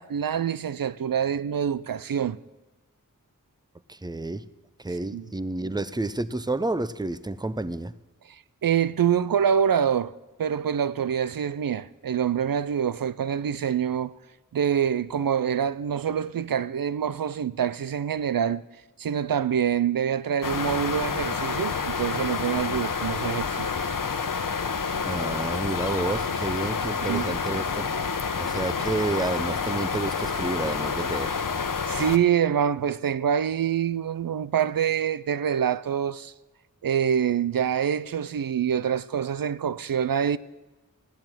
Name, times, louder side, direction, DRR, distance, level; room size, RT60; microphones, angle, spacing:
voice 1, 0.0-2.4 5.1-5.2 8.6-14.1 14.5-18.6 19.0-23.7 27.0-27.3 31.9-36.3 36.8-40.4, right 8 dB, 80° right, 0.5 m, -25 dB
voice 2, 3.9-4.5 4.8-7.9 25.0-28.1 28.4-31.4, right 2 dB, 10° right, 0.7 m, -30 dB
sound 1, 20.4-32.2, left 5 dB, 70° left, 1.1 m, -28 dB
15.0 x 10.5 x 9.0 m
wide cardioid pair, 45°, 34 cm